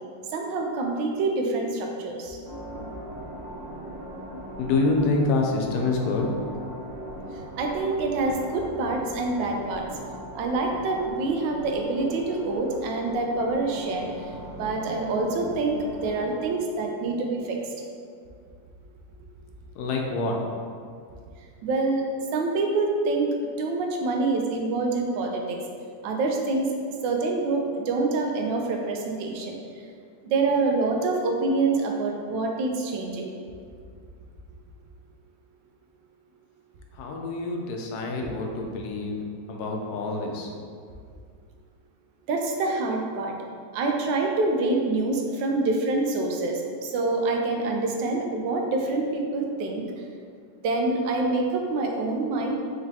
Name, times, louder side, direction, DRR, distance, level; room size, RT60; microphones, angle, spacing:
voice 1, 0.3-2.4 7.6-9.8 10.3-17.6 21.6-25.6 26.0-26.7 27.0-29.6 30.2-33.3 38.2-38.3 42.3-43.3 43.7-49.8 50.6-52.6, right 3 dB, 90° right, 1 dB, 1.3 m, -26 dB
sound 1, 2.4-16.4, equal, 25° right, 0.5 m, -40 dB
voice 2, 4.6-6.3 19.8-20.4 36.9-39.2 39.5-40.5, left 3 dB, 70° left, 1 dB, 1.0 m, -26 dB
5.1 x 3.1 x 2.7 m, 2.2 s
omnidirectional pair, 1.9 m